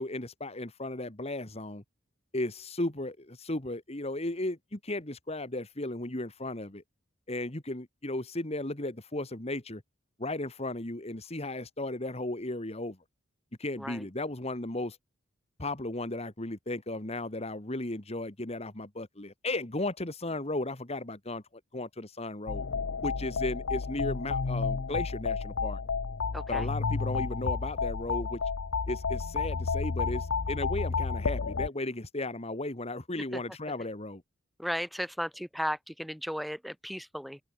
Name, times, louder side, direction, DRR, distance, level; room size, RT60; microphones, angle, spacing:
voice 1, 0.0-1.8 2.3-6.8 7.3-9.8 10.2-13.0 13.6-15.0 15.6-21.4 21.7-22.6 23.0-25.8 26.5-28.4 28.9-34.2, left 2 dB, 30° left, 2.1 m, -35 dB
sound 1, 22.5-31.7, left 4 dB, 85° left, 0.7 m, -31 dB
voice 2, 26.3-26.7 34.6-37.4, equal, ahead, 1.0 m, -35 dB
open air
head